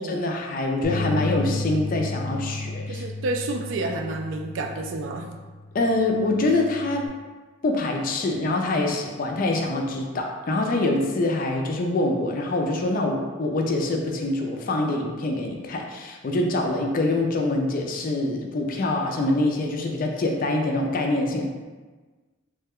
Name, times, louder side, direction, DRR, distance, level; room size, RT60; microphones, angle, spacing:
voice 1, 0.0-3.1 5.7-7.1 7.6-21.5, left 2 dB, 40° left, 2 dB, 0.3 m, -25 dB
Bass guitar, 0.8-7.1, left 2 dB, ahead, 0.9 m, -33 dB
voice 2, 2.9-5.3, right 2 dB, 65° right, 3 dB, 0.3 m, -30 dB
3.2 x 2.2 x 3.5 m, 1.3 s
head